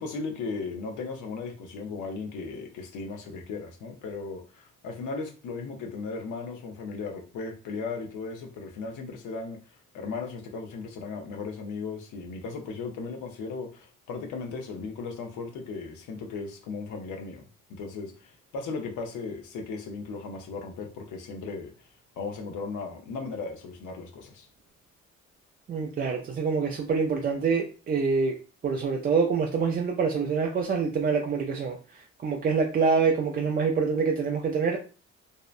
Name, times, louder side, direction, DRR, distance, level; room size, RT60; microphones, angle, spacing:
voice 1, 0.0-9.6 9.9-17.4 17.7-21.7 22.2-24.5, left 4 dB, 85° left, 3 dB, 0.6 m, -36 dB
voice 2, 25.7-28.3 28.6-31.8 32.2-34.8, right 5 dB, 30° right, 1 dB, 0.4 m, -26 dB
2.7 x 2.1 x 2.4 m, 0.35 s
cardioid pair, 90°, 30 cm